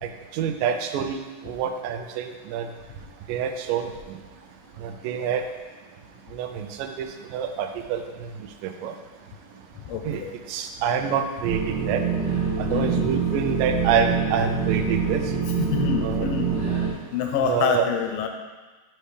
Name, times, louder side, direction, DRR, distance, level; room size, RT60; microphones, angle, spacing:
voice 1, 0.0-2.7 3.3-4.2 4.8-5.4 6.3-9.0 10.0-10.2 10.5-12.0 12.6-15.4 16.0-16.3 17.5-17.8, right 7 dB, 85° right, 7 dB, 2.2 m, -27 dB
voice 2, 9.9-10.4 12.7-13.1 15.6-16.5 17.1-18.3, left 7 dB, 90° left, 4 dB, 2.5 m, -26 dB
sound 1, 11.4-16.9, right 5 dB, 45° right, 1.4 m, -25 dB
11.0 x 4.4 x 3.3 m, 1.3 s
omnidirectional pair, 3.9 m